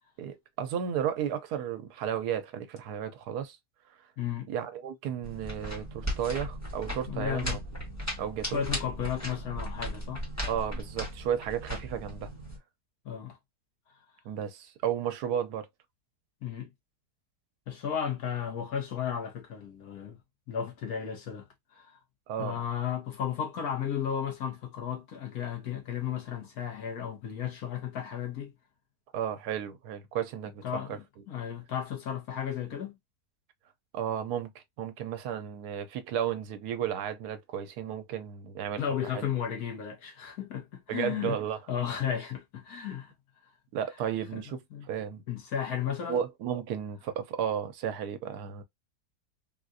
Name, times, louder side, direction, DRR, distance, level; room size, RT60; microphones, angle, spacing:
voice 1, 0.2-3.6 4.5-7.6 8.2-8.6 10.5-12.3 14.2-15.7 22.3-22.6 29.1-30.6 30.9-31.0 33.9-39.3 40.9-41.6 43.7-45.2 46.1-48.6, right 9 dB, 80° right, 1.1 m, -33 dB
voice 2, 4.2-4.5 7.1-7.6 8.5-10.2 13.0-13.4 16.4-16.7 17.7-20.2 20.5-22.0 22.4-28.5 30.6-33.0 38.8-41.4 41.7-43.1 44.3-44.8 45.3-46.2, left 8 dB, 70° left, 1.5 m, -34 dB
sound 1, 5.2-12.6, equal, 10° left, 1.2 m, -37 dB
3.7 x 2.4 x 2.5 m
omnidirectional pair, 1.7 m